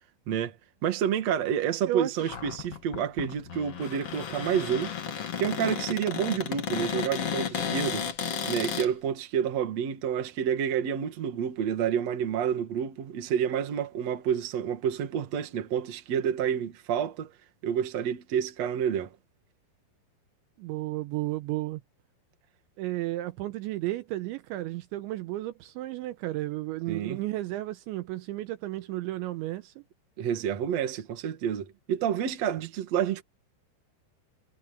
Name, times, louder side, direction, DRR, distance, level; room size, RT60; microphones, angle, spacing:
voice 1, 0.8-4.9 5.4-8.1 8.4-17.3 17.6-19.2 26.9-27.2 30.2-33.2, right 8 dB, 50° right, 2.2 m, -29 dB
Cupboard open or close, 2.2-8.9, left 7 dB, 70° left, 1.4 m, -33 dB
voice 2, 20.6-21.8 22.8-29.8, right 16 dB, 80° right, 3.0 m, -33 dB
omnidirectional pair, 5.6 m